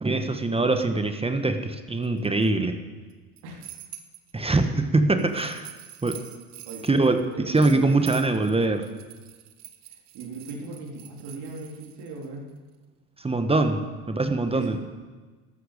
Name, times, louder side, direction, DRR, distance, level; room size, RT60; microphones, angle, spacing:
voice 1, 0.0-2.8 4.3-5.7 6.0-6.2 6.8-8.9 13.2-14.8, right 2 dB, 15° right, 7 dB, 1.3 m, -23 dB
sound 1, 2.0-2.5 3.1-4.3 5.2-12.3, right 12 dB, 80° right, 1.2 m, -45 dB
voice 2, 6.7-8.0 10.1-12.5 14.5-14.8, right 3 dB, 55° right, -1 dB, 3.6 m, -38 dB
13.0 x 12.5 x 5.2 m, 1.3 s
hypercardioid pair, 80°, 45 cm